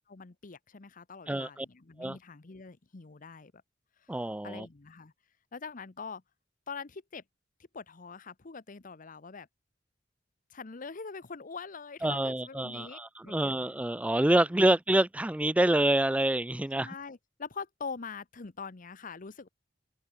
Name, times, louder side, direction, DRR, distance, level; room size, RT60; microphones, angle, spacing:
voice 1, 0.1-3.5 4.0-4.2 4.4-5.1 5.5-6.2 6.7-7.2 7.7-9.5 10.5-13.5 16.8-19.5, left 5 dB, 45° left, 0.8 m, -43 dB
voice 2, 1.3-1.7 2.0-2.2 4.1-4.7 12.0-16.9, right 1 dB, 5° right, 0.4 m, -27 dB
open air
head